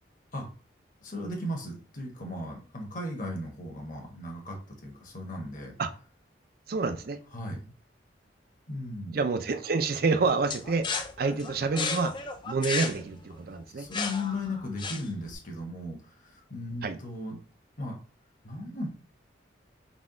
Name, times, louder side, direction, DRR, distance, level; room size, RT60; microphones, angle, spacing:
voice 1, 1.0-5.7 7.3-7.7 8.7-9.2 13.7-17.4 17.8-18.0 18.4-18.9, left 1 dB, 45° left, 1.0 m, -36 dB
voice 2, 6.7-7.2 9.1-10.9 11.2-12.1 12.5-13.9 16.8-17.0, right 4 dB, 50° right, 0.4 m, -28 dB
sound 1, 10.5-15.3, left 4 dB, 25° left, 0.4 m, -34 dB
4.1 x 2.3 x 3.7 m
head